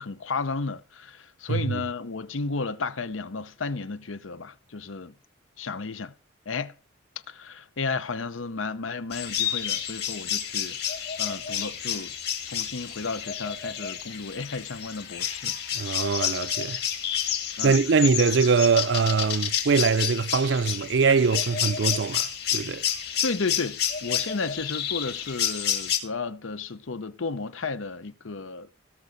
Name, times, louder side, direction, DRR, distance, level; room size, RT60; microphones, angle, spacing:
voice 1, 0.0-5.1 5.6-6.1 6.5-6.7 7.3-12.1 12.4-15.6 17.6-17.8 23.2-28.7, left 4 dB, 90° left, 0.8 m, -33 dB
voice 2, 1.5-1.8 15.7-16.8 17.6-22.9, right 5 dB, 65° right, 0.5 m, -23 dB
sound 1, 9.1-26.0, left 9 dB, 55° left, 2.7 m, -30 dB
17.5 x 6.1 x 6.6 m
head